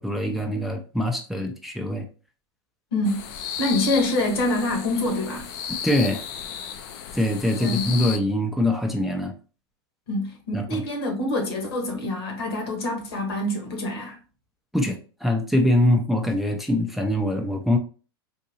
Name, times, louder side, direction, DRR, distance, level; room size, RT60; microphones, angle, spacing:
voice 1, 0.0-2.1 5.7-6.2 7.1-9.3 10.5-10.8 14.7-17.8, left 1 dB, ahead, 0.5 m, -23 dB
voice 2, 2.9-3.3 3.6-5.5 7.6-7.9 10.1-14.2, left 1 dB, 75° left, 1.3 m, -26 dB
sound 1, 3.0-8.2, left 8 dB, 55° left, 0.5 m, -34 dB
3.9 x 2.6 x 2.8 m
hypercardioid pair, 100°, 13 cm